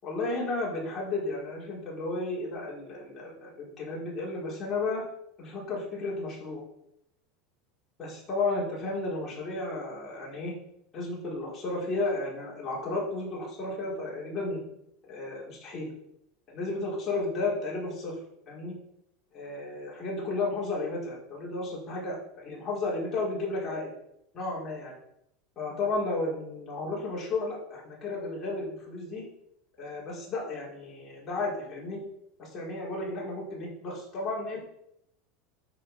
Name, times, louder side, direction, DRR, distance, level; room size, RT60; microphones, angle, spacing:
voice 1, 0.0-5.0 5.4-6.6 8.0-10.5 10.9-14.6 15.1-15.9 16.5-18.1 18.5-18.7 19.3-23.9 24.3-24.9 25.6-29.2 29.8-32.0 32.4-34.6, left 2 dB, 20° left, -5 dB, 3.9 m, -33 dB
12.0 x 5.2 x 5.3 m, 0.76 s
supercardioid pair, 165°, 0 cm